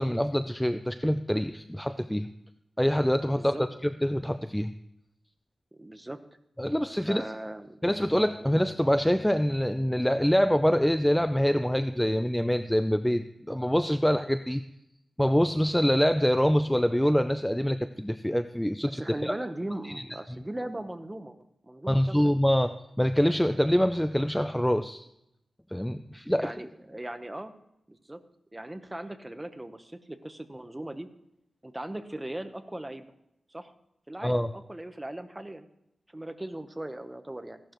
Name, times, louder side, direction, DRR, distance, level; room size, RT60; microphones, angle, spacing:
voice 1, 0.0-2.3 2.8-3.5 3.8-4.7 6.6-7.3 7.8-14.6 15.2-19.3 19.9-20.0 21.9-25.0 25.7-26.5 34.2-34.5, equal, 5° left, 10 dB, 0.4 m, -25 dB
voice 2, 3.3-3.7 5.8-6.2 7.0-7.8 8.4-8.5 16.6-16.7 18.8-21.4 21.6-22.3 26.4-27.5 27.9-28.2 28.5-31.1 31.6-33.1 33.5-33.7 34.1-35.7 36.1-37.6, right 1 dB, 15° right, 9 dB, 1.0 m, -38 dB
16.0 x 11.5 x 3.1 m, 0.83 s
wide cardioid pair, 90°, 0 cm